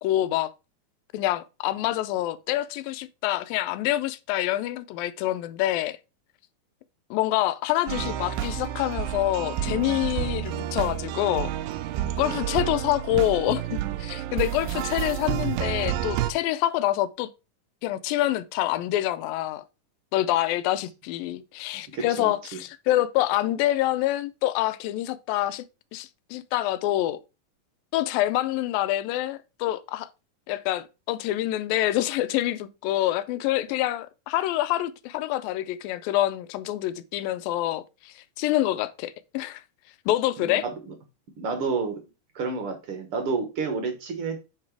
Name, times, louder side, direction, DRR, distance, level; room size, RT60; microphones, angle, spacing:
voice 1, 0.0-0.5 1.1-6.0 7.1-11.5 12.2-17.3 17.8-19.6 20.1-25.6 25.9-27.2 27.9-30.1 30.5-39.6 40.1-40.6, left 14 dB, 90° left, 2.4 m, -26 dB
sound 1, 7.9-16.3, right 12 dB, 90° right, 2.3 m, -30 dB
voice 2, 21.9-22.6 40.4-40.9 41.4-42.0 42.3-44.4, right 4 dB, 65° right, 1.4 m, -30 dB
8.7 x 4.0 x 4.6 m
omnidirectional pair, 4.0 m